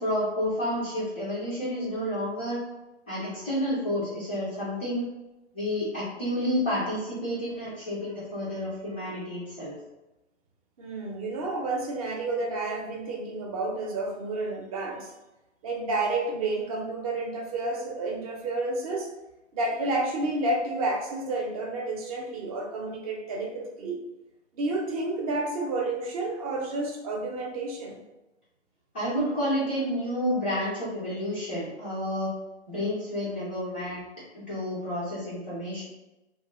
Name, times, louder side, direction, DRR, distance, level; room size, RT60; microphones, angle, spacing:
voice 1, 0.0-2.6 3.1-5.0 5.5-9.8 28.9-32.3 32.7-34.0 34.3-35.9, equal, 10° left, -11 dB, 0.3 m, -30 dB
voice 2, 10.8-15.1 15.6-19.1 19.5-24.0 24.5-28.0, right 2 dB, 30° right, 0 dB, 0.6 m, -30 dB
2.7 x 2.1 x 3.6 m, 1.0 s
figure-of-eight pair, 125°, 35 cm